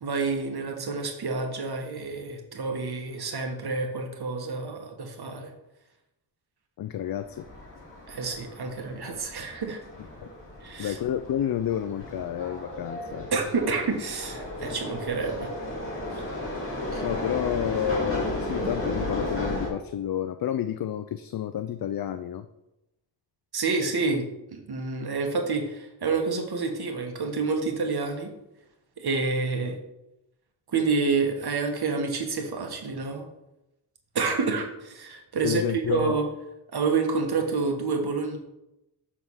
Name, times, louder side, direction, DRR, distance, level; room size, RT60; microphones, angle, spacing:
voice 1, 0.0-5.5 8.1-9.8 10.6-11.0 13.3-15.7 16.1-16.3 16.9-17.0 23.5-28.3 29.0-29.8 30.7-33.2 34.1-35.6 35.9-36.2 36.7-38.4, right 4 dB, 60° right, 3 dB, 1.4 m, -28 dB
voice 2, 6.8-7.5 10.2-10.3 10.8-13.3 17.0-22.5 35.4-36.2, left 10 dB, 55° left, 10 dB, 0.5 m, -30 dB
sound 1, 7.1-19.7, left 1 dB, 30° left, 2.5 m, -34 dB
7.3 x 3.7 x 6.2 m, 0.91 s
cardioid pair, 80°, 42 cm